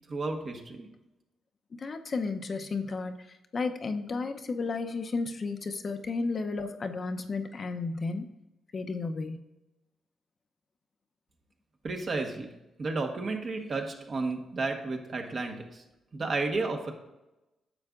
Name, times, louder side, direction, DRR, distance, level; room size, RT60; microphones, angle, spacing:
voice 1, 0.1-0.9 11.8-12.5 12.8-15.8 16.1-16.9, right 3 dB, 45° right, 3 dB, 1.3 m, -32 dB
voice 2, 1.8-3.3 3.5-8.3 8.7-9.4, left 3 dB, 45° left, 7 dB, 0.7 m, -33 dB
9.8 x 7.0 x 2.5 m, 0.98 s
cardioid pair, 80°, 0 cm